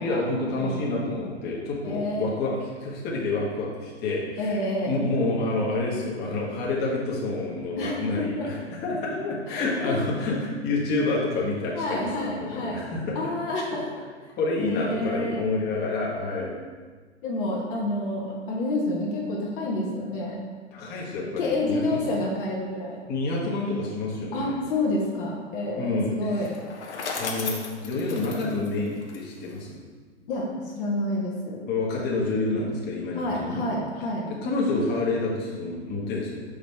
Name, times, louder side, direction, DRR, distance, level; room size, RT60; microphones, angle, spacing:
voice 1, 0.0-4.6 4.9-13.2 13.7-13.8 14.4-16.5 20.7-22.0 23.1-24.5 25.8-26.5 27.2-29.8 31.7-33.6 34.4-36.4, left 2 dB, 30° left, -4 dB, 1.4 m, -28 dB
voice 2, 1.8-2.3 4.4-5.0 7.8-8.4 9.5-10.0 11.7-12.8 13.1-13.8 14.6-15.4 16.4-16.5 17.2-20.3 21.4-23.0 24.3-26.6 30.3-31.6 33.1-34.3, left 2 dB, 45° left, -3 dB, 1.3 m, -29 dB
Bicycle, 26.4-29.6, left 4 dB, 70° left, 1.1 m, -35 dB
6.1 x 5.1 x 3.5 m, 1.5 s
hypercardioid pair, 110°, 35 cm